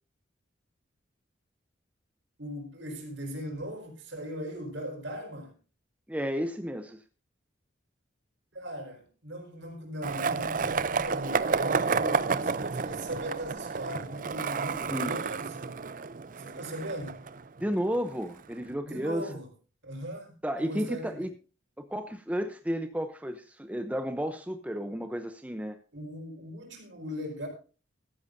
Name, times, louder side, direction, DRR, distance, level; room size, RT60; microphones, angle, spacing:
voice 1, 2.4-5.5 8.5-15.8 16.4-17.2 18.8-19.5 19.8-20.3 20.6-21.3 25.9-27.5, equal, 70° right, 4.7 m, -39 dB
voice 2, 6.1-7.0 14.7-15.1 17.6-19.3 20.4-21.3 21.8-25.8, equal, 5° right, 0.7 m, -32 dB
Skateboard, 10.0-18.0, right 5 dB, 45° right, 0.5 m, -30 dB
15.5 x 13.5 x 2.7 m
head